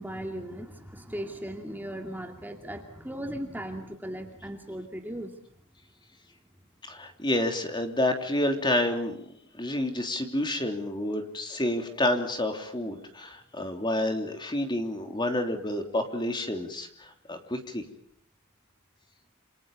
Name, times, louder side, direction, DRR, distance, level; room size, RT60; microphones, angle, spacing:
voice 1, 0.0-5.3, equal, 10° right, 3 dB, 2.4 m, -37 dB
voice 2, 6.9-9.2 9.6-17.8, left 1 dB, 20° left, 5 dB, 3.2 m, -29 dB
28.5 x 28.0 x 5.5 m, 0.63 s
head